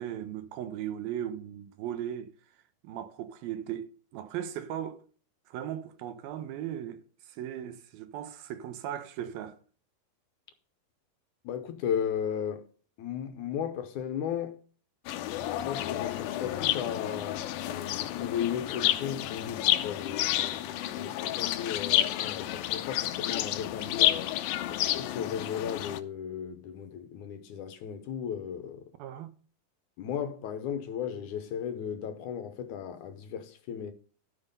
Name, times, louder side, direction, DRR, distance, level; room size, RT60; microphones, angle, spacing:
voice 1, 0.0-2.3 2.8-5.0 5.5-9.6 29.0-29.3, right 10 dB, 85° right, 2.9 m, -37 dB
voice 2, 11.4-12.7 13.0-14.6 15.6-17.5 18.0-24.4 24.9-28.9 30.0-33.9, left 8 dB, 70° left, 2.1 m, -35 dB
sound 1, 15.1-26.0, left 13 dB, 90° left, 2.5 m, -30 dB
13.0 x 5.9 x 5.3 m
omnidirectional pair, 4.1 m